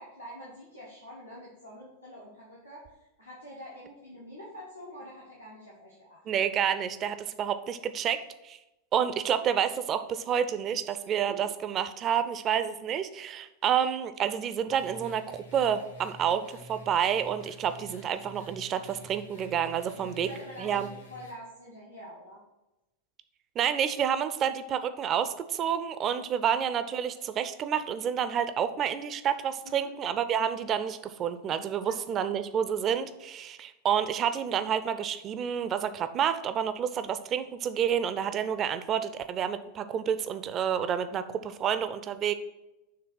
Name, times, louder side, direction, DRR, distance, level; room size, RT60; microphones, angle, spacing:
voice 1, 0.0-6.4 11.3-11.4 20.0-22.4 29.6-29.9 31.9-32.4, equal, 90° left, -7 dB, 1.3 m, -46 dB
voice 2, 6.3-8.6 8.9-20.3 20.6-20.9 23.6-42.3, right 8 dB, 30° right, 11 dB, 0.5 m, -29 dB
sound 1, 14.7-21.3, equal, 70° left, 2.0 m, -49 dB
6.7 x 3.4 x 5.6 m, 0.98 s
figure-of-eight pair, 90°, 0 cm